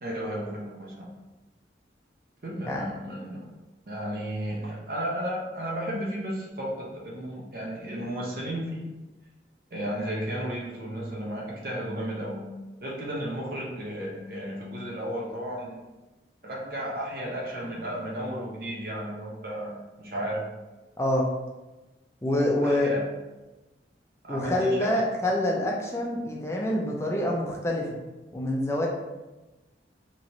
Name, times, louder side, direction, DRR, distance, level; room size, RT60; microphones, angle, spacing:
voice 1, 0.0-1.1 2.4-3.4 3.9-8.9 9.7-12.5 12.8-15.8 16.4-20.4 22.6-23.0 24.2-24.9, equal, 55° right, -3 dB, 0.6 m, -33 dB
voice 2, 21.0-21.3 22.2-22.9 24.3-27.9 28.3-28.9, left 1 dB, 15° left, -1 dB, 0.4 m, -26 dB
2.9 x 2.9 x 2.6 m, 1.1 s
head